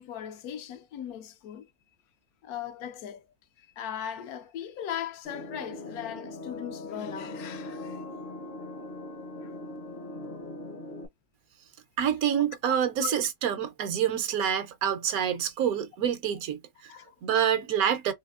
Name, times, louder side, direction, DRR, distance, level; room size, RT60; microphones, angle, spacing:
voice 1, 0.0-1.7 2.4-3.2 3.6-8.0 9.4-9.5 12.3-13.2 16.9-17.1, left 9 dB, 75° left, 1.0 m, -38 dB
sound 1, 5.2-11.1, left 2 dB, 50° left, 0.7 m, -40 dB
voice 2, 12.0-16.9 17.2-18.1, right 9 dB, 75° right, 1.0 m, -27 dB
4.1 x 2.6 x 2.3 m
omnidirectional pair, 1.6 m